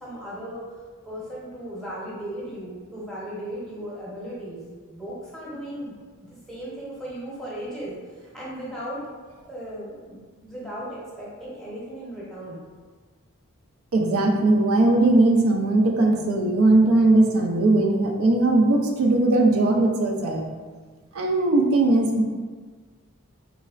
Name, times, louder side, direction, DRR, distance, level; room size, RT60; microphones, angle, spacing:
voice 1, 0.0-0.6 1.0-4.6 4.9-9.0 9.5-12.6, right 1 dB, ahead, -7 dB, 0.8 m, -36 dB
voice 2, 13.9-20.5 21.1-22.2, right 2 dB, 70° right, 1 dB, 0.4 m, -19 dB
3.9 x 3.2 x 2.4 m, 1.4 s
head